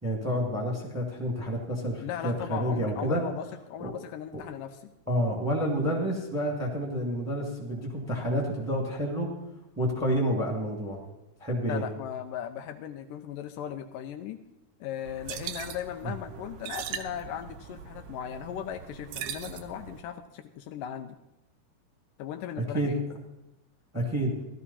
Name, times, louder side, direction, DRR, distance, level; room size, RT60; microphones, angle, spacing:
voice 1, 0.0-3.2 3.8-3.9 4.3-4.4 5.1-9.3 9.8-11.0 11.4-11.8 16.0-16.1 22.7-22.9 23.9-24.3, equal, 5° right, -1 dB, 1.5 m, -29 dB
voice 2, 2.0-4.9 6.0-6.2 11.6-14.4 14.8-21.2 22.2-23.0, left 9 dB, 80° left, 8 dB, 2.1 m, -37 dB
Water Swish, 15.1-20.0, right 9 dB, 75° right, 2.2 m, -40 dB
15.5 x 12.5 x 4.2 m, 0.94 s
omnidirectional pair, 4.0 m